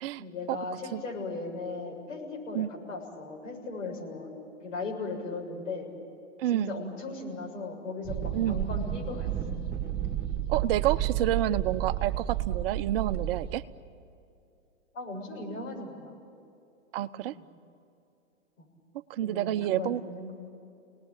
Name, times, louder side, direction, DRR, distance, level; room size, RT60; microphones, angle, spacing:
voice 1, 0.2-4.3 4.6-5.9 6.5-9.3 14.9-16.1 17.3-17.4 18.6-18.7 19.2-20.3, left 3 dB, 70° left, 0 dB, 7.2 m, -37 dB
voice 2, 6.4-6.7 8.3-8.6 10.5-13.6 16.9-17.3 19.1-20.0, right 12 dB, 45° right, 11 dB, 0.8 m, -29 dB
sound 1, 8.0-13.6, right 12 dB, 25° right, 2.3 m, -31 dB
30.0 x 19.5 x 9.1 m, 2.6 s
hypercardioid pair, 115°, 39 cm